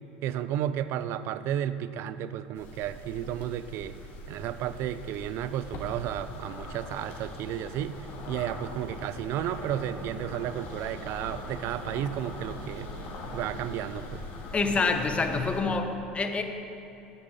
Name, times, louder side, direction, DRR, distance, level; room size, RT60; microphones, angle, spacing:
voice 1, 0.2-4.0 4.3-12.9 13.3-14.2, right 10 dB, 55° right, 13 dB, 0.5 m, -33 dB
sound 1, 2.6-15.6, left 1 dB, 50° left, 2.4 m, -41 dB
voice 2, 14.5-16.4, left 4 dB, 25° left, 5 dB, 1.1 m, -27 dB
10.5 x 7.5 x 6.7 m, 2.8 s
hypercardioid pair, 85°, 5 cm